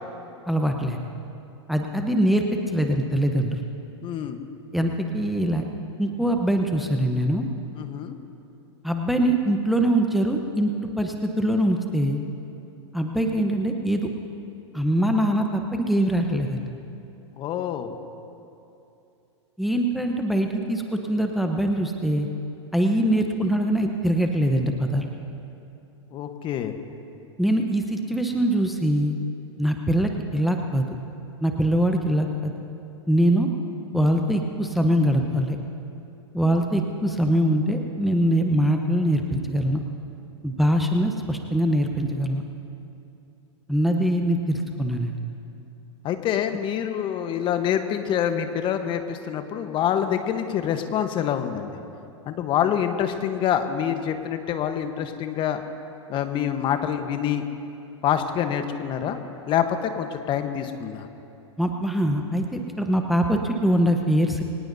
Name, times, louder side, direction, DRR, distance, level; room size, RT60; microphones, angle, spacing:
voice 1, 0.5-1.0 1.7-3.6 4.7-5.6 6.0-7.5 8.8-10.7 11.0-12.2 12.9-14.1 14.7-16.7 19.6-22.3 22.7-25.1 27.4-29.2 29.6-30.9 31.4-32.5 33.1-33.5 33.9-35.6 36.3-39.8 40.4-42.4 43.7-45.2 61.6-64.4, right 1 dB, ahead, 3 dB, 0.9 m, -23 dB
voice 2, 4.0-4.4 7.7-8.2 17.4-17.9 26.1-26.7 46.0-51.8 52.3-55.6 56.1-57.4 58.0-59.2 59.5-61.1, left 9 dB, 30° left, 8 dB, 1.1 m, -26 dB
24.0 x 19.0 x 2.7 m, 2.8 s
hypercardioid pair, 110°, 16 cm